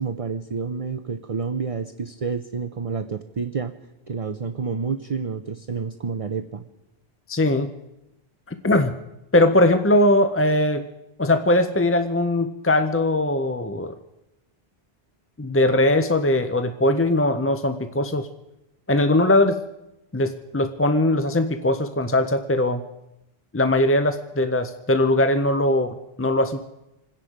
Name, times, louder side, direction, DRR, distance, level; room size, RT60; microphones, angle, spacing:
voice 1, 0.0-3.7 4.1-6.6, right 5 dB, 40° right, 9 dB, 0.6 m, -29 dB
voice 2, 7.3-7.7 8.5-9.0 9.3-10.8 11.2-13.9 15.4-18.3 18.9-19.6 20.1-22.8 23.5-26.6, left 1 dB, 20° left, 9 dB, 0.4 m, -20 dB
27.5 x 10.5 x 5.0 m, 0.94 s
omnidirectional pair, 1.1 m